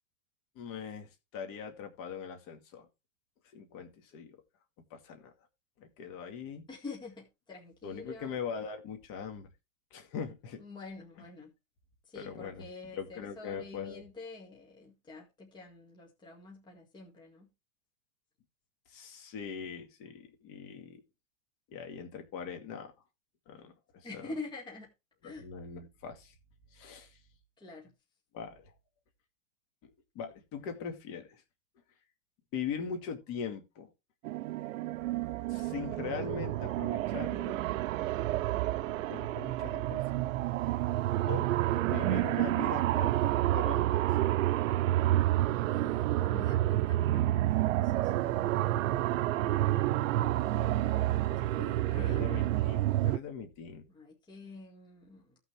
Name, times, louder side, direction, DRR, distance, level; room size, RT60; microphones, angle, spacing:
voice 1, 0.6-2.9 3.5-4.4 4.9-5.3 5.8-6.6 7.8-9.5 9.9-10.6 12.1-12.6 12.9-14.0 18.9-21.0 21.7-22.9 23.5-24.3 25.2-26.3 26.7-27.2 28.3-28.7 29.8-29.9 30.1-31.4 32.5-33.9 35.5-37.6 39.1-40.2 41.3-41.5 41.8-44.4 50.0-50.2 50.7-53.9, left 6 dB, 35° left, 5 dB, 2.2 m, -41 dB
voice 2, 6.7-8.4 10.6-11.5 12.1-17.5 24.0-24.9 25.2-25.5 27.6-27.9 45.7-48.5 51.1-52.3 53.9-55.4, left 3 dB, 10° left, -1 dB, 2.0 m, -47 dB
sound 1, 34.2-53.2, right 15 dB, 80° right, 0.6 m, -29 dB
16.0 x 6.0 x 3.3 m, 0.25 s
supercardioid pair, 160°, 39 cm